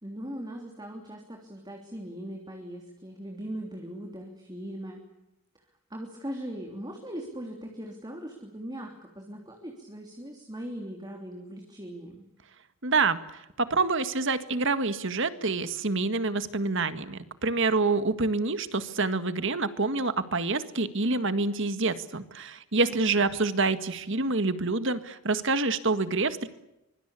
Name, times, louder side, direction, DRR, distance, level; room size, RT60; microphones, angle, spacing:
voice 1, 0.0-5.0 5.9-12.2 22.9-23.0, equal, 20° right, 2 dB, 3.3 m, -39 dB
voice 2, 12.8-26.5, right 3 dB, 60° right, 11 dB, 1.8 m, -27 dB
25.0 x 24.0 x 8.5 m, 0.89 s
head